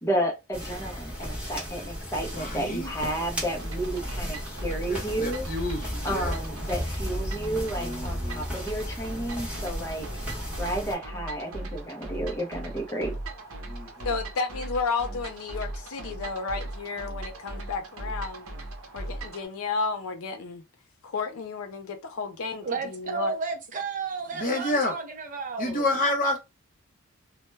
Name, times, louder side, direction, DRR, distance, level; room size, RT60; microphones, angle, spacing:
voice 1, 0.0-5.5 6.0-10.1 10.6-13.1, right 1 dB, 15° left, 0.5 m, -31 dB
sound 1, 0.5-11.0, equal, 5° right, 0.9 m, -35 dB
voice 2, 2.3-2.9 4.9-6.3 7.8-8.4 13.7-14.1 24.3-24.9 25.6-26.4, left 1 dB, 35° left, 0.9 m, -29 dB
sound 2, 3.6-19.5, right 1 dB, 70° right, 0.7 m, -38 dB
voice 3, 14.0-18.5 18.9-20.6 21.0-23.3, left 4 dB, 65° left, 0.4 m, -32 dB
voice 4, 22.6-25.8, right 4 dB, 35° right, 0.5 m, -32 dB
2.1 x 2.1 x 3.2 m
head